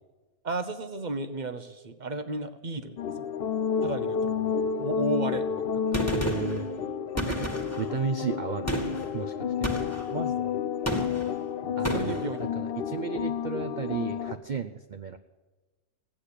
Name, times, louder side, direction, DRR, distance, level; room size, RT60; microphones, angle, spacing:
voice 1, 0.4-3.2 3.8-6.1 10.0-10.7 11.6-12.4, right 2 dB, 35° right, 10 dB, 0.8 m, -34 dB
sound 1, 3.0-14.3, left 7 dB, 55° left, 0.7 m, -30 dB
Gunshot gunfire, 5.9-6.6 7.2-7.9 8.7-9.1 9.6-10.1 10.9-11.3 11.8-12.3, right 1 dB, 10° left, 1.8 m, -31 dB
voice 2, 6.1-6.7 7.3-9.9 11.8-12.2 12.5-15.2, right 6 dB, 65° right, 8 dB, 0.4 m, -34 dB
16.0 x 8.6 x 10.0 m, 1.2 s
omnidirectional pair, 1.6 m